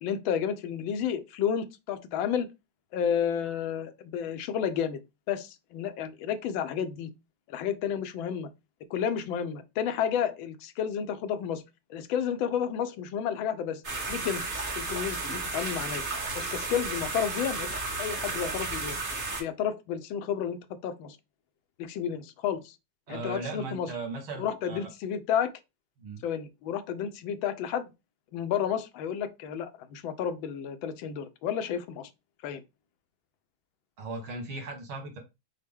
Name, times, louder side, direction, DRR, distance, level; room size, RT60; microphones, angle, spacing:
voice 1, 0.0-2.5 2.9-5.0 5.3-7.1 7.5-8.5 8.9-11.6 11.9-13.8 14.1-14.4 14.7-16.1 16.3-19.0 19.4-21.2 21.8-22.8 23.1-23.9 24.4-25.5 26.2-27.9 28.3-32.1 32.4-32.6, left 8 dB, 75° left, 1.4 m, -31 dB
sound 1, 13.8-19.4, right 3 dB, 30° right, 1.1 m, -33 dB
voice 2, 23.1-24.9 26.0-26.2 34.0-35.2, right 3 dB, 85° right, 2.3 m, -37 dB
6.4 x 2.2 x 3.5 m
omnidirectional pair, 2.2 m